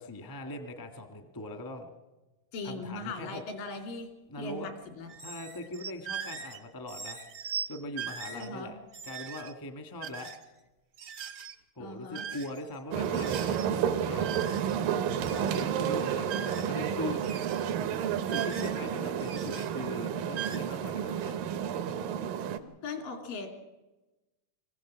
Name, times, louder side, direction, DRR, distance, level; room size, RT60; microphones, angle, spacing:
voice 1, 0.0-1.9 2.6-3.4 4.3-4.7 5.2-7.2 7.7-8.8 9.0-10.3 11.7-14.3 15.2-17.2 18.3-21.4, left 2 dB, 25° left, 6 dB, 0.4 m, -40 dB
voice 2, 2.5-4.1 4.4-4.7 5.0-5.1 8.3-8.7 11.8-12.3 22.8-23.5, left 3 dB, 85° left, 4 dB, 4.3 m, -39 dB
sound 1, 5.1-6.6 6.9-7.7 7.9-8.5 8.9-9.5 10.0-10.4 10.9-11.5 12.1-12.8 13.0-13.7 14.2-14.9 15.1-15.7 16.2-16.9 17.2-17.7 18.3-18.9 19.2-19.7 20.3-20.6, right 7 dB, 65° right, 1.0 m, -40 dB
sound 2, 12.9-22.6, right 8 dB, 85° right, 2.7 m, -31 dB
24.5 x 16.0 x 7.5 m, 1.1 s
omnidirectional pair, 3.8 m